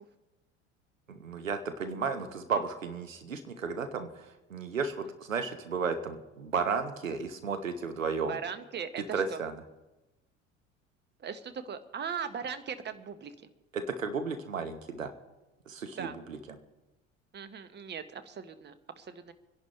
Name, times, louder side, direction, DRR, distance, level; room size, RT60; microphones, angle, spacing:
voice 1, 1.1-8.4 9.0-9.6 13.7-15.1 15.7-16.4, right 5 dB, 85° right, 8 dB, 1.0 m, -33 dB
voice 2, 8.3-9.4 11.2-13.3 16.0-16.2 17.3-19.3, right 7 dB, 25° right, 11 dB, 1.1 m, -39 dB
26.0 x 11.0 x 3.3 m, 1.0 s
figure-of-eight pair, 70°, 38 cm